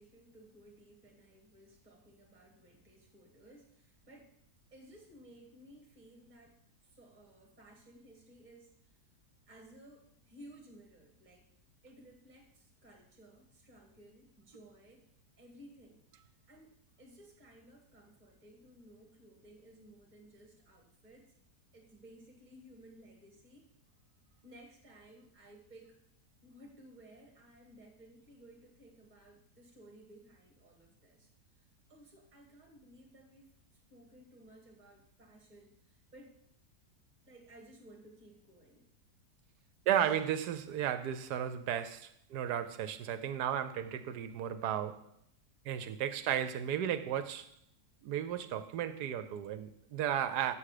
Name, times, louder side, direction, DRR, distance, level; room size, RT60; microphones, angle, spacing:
voice 1, 0.0-4.3 4.7-6.6 6.9-8.7 9.5-11.5 11.8-15.1 15.4-16.0 16.5-16.7 17.0-21.3 21.7-23.7 24.4-26.0 26.4-31.3 31.9-33.6 33.9-36.3 37.3-38.9, right 1 dB, 25° right, 2.0 m, -57 dB
voice 2, 39.9-45.1 45.6-47.5 48.0-50.5, right 10 dB, 75° right, 1.2 m, -34 dB
7.3 x 6.2 x 6.6 m
omnidirectional pair, 1.8 m